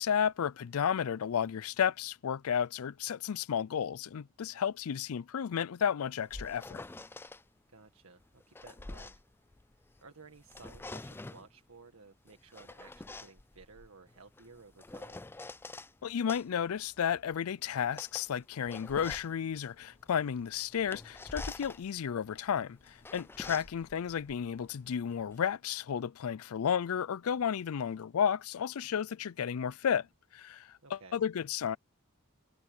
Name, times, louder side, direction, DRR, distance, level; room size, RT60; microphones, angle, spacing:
voice 1, 0.0-6.8 16.0-30.1 30.3-31.8, left 8 dB, 85° left, 0.4 m, -32 dB
sound 1, 6.0-7.4 8.2-10.0 10.4-11.5 12.3-15.9 16.3-25.4, left 2 dB, 10° left, 0.3 m, -47 dB
voice 2, 7.7-9.2 10.0-15.2 30.8-31.2, right 4 dB, 80° right, 1.7 m, -56 dB
head